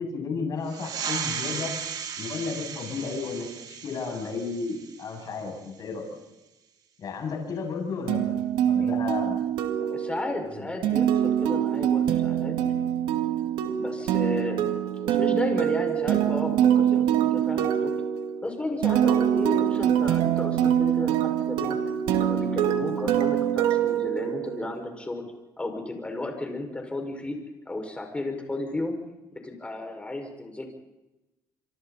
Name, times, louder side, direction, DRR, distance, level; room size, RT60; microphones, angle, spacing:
voice 1, 0.0-1.7 2.2-6.1 7.0-9.4, left 4 dB, 50° left, 2 dB, 7.6 m, -33 dB
sound 1, 0.6-5.8, right 7 dB, 55° right, 3.3 m, -36 dB
sound 2, 8.1-24.8, right 10 dB, 80° right, 2.1 m, -24 dB
voice 2, 9.7-12.6 13.6-17.9 18.4-21.8 22.2-25.2 25.6-27.4 27.7-29.0 29.3-30.7, left 2 dB, 15° left, 3 dB, 5.8 m, -33 dB
27.5 x 24.5 x 4.3 m, 1.0 s
cardioid pair, 100°, 8 cm